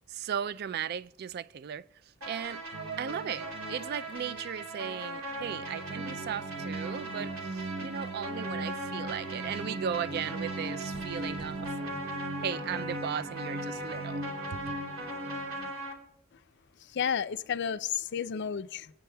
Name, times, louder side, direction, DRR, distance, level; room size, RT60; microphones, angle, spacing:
voice 1, 0.1-1.9 2.3-2.6 3.0-11.7 12.4-14.2 14.5-14.6, right 8 dB, 50° right, 0.3 m, -36 dB
sound 1, 2.2-15.9, right 1 dB, 90° right, 2.8 m, -40 dB
sound 2, 2.7-15.7, right 2 dB, 65° right, 0.8 m, -39 dB
sound 3, 10.9-11.7, left 1 dB, 25° right, 1.7 m, -50 dB
voice 2, 16.8-18.9, left 7 dB, 55° left, 0.4 m, -32 dB
26.5 x 9.1 x 2.2 m
head